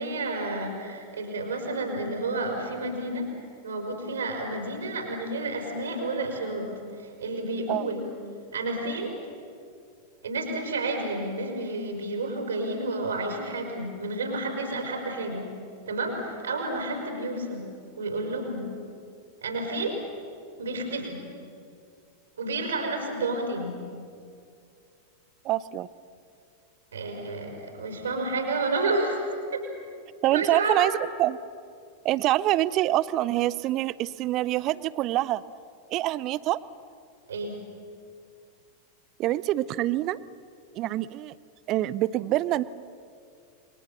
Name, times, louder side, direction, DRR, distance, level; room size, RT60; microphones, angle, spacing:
voice 1, 0.0-3.3 3.6-6.7 7.0-8.1 8.5-9.1 10.2-15.5 15.9-17.6 18.0-18.7 19.4-20.0 20.6-21.2 22.4-23.7 26.9-29.6 30.3-30.9 37.3-37.6, right 2 dB, 65° right, 3 dB, 5.3 m, -30 dB
voice 2, 25.4-25.9 30.2-31.4 32.0-35.4 35.9-36.6 39.2-40.2 40.7-41.3 41.7-42.6, right 15 dB, 35° right, 19 dB, 0.7 m, -25 dB
29.0 x 23.0 x 7.3 m, 2.3 s
figure-of-eight pair, 90°, 0 cm